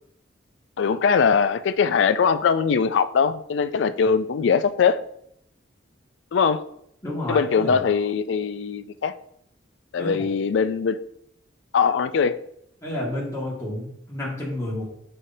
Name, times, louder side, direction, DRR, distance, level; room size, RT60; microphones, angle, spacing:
voice 1, 0.8-5.0 6.3-6.6 7.3-9.1 9.9-11.0 11.7-12.4, left 6 dB, 70° left, 13 dB, 0.4 m, -21 dB
voice 2, 7.0-7.9 10.0-10.3 12.8-14.8, left 1 dB, 15° left, -6 dB, 1.9 m, -30 dB
6.4 x 5.5 x 2.7 m, 0.72 s
head